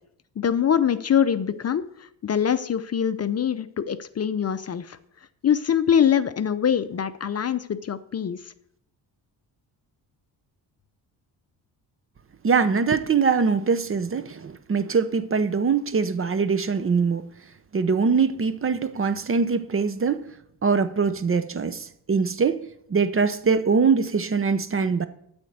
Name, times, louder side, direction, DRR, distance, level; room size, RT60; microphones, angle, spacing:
voice 1, 0.4-5.0 5.4-8.4, left 8 dB, 35° left, 0.6 m, -23 dB
voice 2, 12.4-17.3 17.7-20.3 20.6-25.1, right 5 dB, 30° right, 0.7 m, -23 dB
13.0 x 4.4 x 8.1 m
cardioid pair, 80°, 42 cm